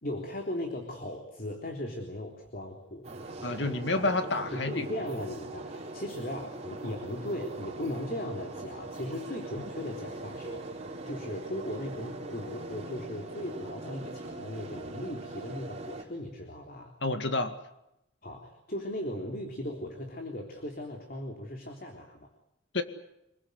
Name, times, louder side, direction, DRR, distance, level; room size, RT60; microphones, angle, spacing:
voice 1, 0.0-3.1 4.5-16.9 18.2-22.3, left 1 dB, 50° left, 3 dB, 3.6 m, -38 dB
sound 1, 3.0-16.0, right 2 dB, 35° right, 4.4 m, -41 dB
voice 2, 3.4-4.9 17.0-17.6 22.7-22.8, left 2 dB, 65° left, 8 dB, 2.2 m, -29 dB
27.0 x 21.5 x 8.1 m, 0.84 s
head